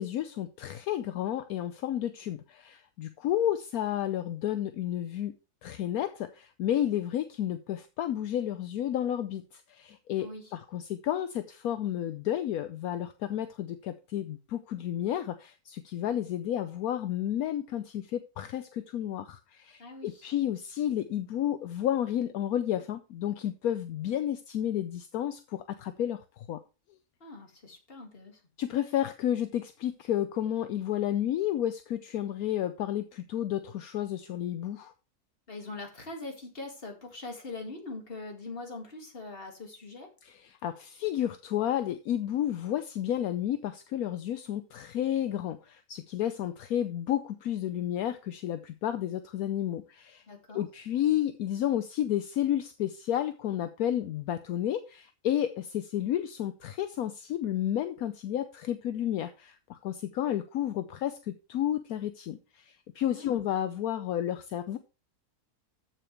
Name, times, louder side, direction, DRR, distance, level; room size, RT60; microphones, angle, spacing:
voice 1, 0.0-5.3 5.6-26.6 28.6-34.9 40.2-50.2 50.5-64.8, left 11 dB, 75° left, 10 dB, 1.1 m, -31 dB
voice 2, 10.2-10.5 19.8-20.3 27.2-28.4 35.5-40.1 50.3-50.6 63.1-63.4, left 3 dB, 35° left, 3 dB, 2.3 m, -42 dB
14.0 x 5.8 x 3.3 m, 0.32 s
omnidirectional pair, 1.6 m